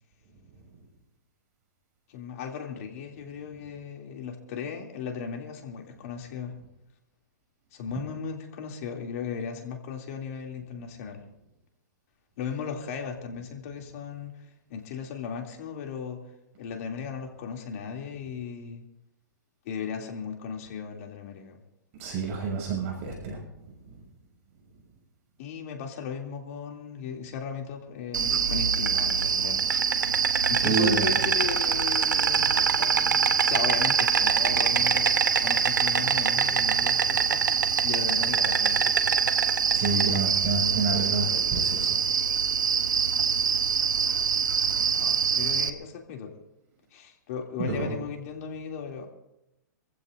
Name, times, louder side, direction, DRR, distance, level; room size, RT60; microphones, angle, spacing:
voice 1, 2.1-6.5 7.7-11.2 12.4-14.3 14.7-16.2 16.6-18.8 19.6-21.6 25.4-29.6 30.5-37.4 37.8-39.2 44.6-46.3 46.9-49.1, left 6 dB, 55° left, 2 dB, 2.8 m, -36 dB
voice 2, 22.0-23.4 30.6-31.2 39.7-42.0 47.6-47.9, right 4 dB, 50° right, 0 dB, 6.6 m, -28 dB
Insect, 28.1-45.7, right 6 dB, 80° right, 0.9 m, -24 dB
26.5 x 15.0 x 2.6 m, 0.87 s
hypercardioid pair, 120°, 10 cm